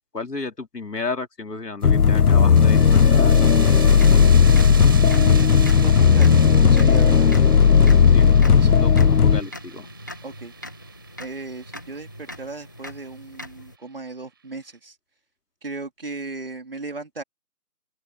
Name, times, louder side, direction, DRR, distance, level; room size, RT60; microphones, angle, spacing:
voice 1, 0.1-3.5 8.1-9.9, left 3 dB, 85° left, 3.5 m, -32 dB
sound 1, 1.8-9.4, left 6 dB, 70° left, 0.8 m, -15 dB
sound 2, 1.8-13.1, right 6 dB, 15° right, 5.1 m, -39 dB
sound 3, 3.6-13.8, equal, 10° left, 1.9 m, -40 dB
voice 2, 4.7-7.3 8.2-8.7 10.2-10.5 11.2-15.0 15.6-17.2, right 3 dB, 35° right, 3.9 m, -36 dB
open air
figure-of-eight pair, 180°, 47 cm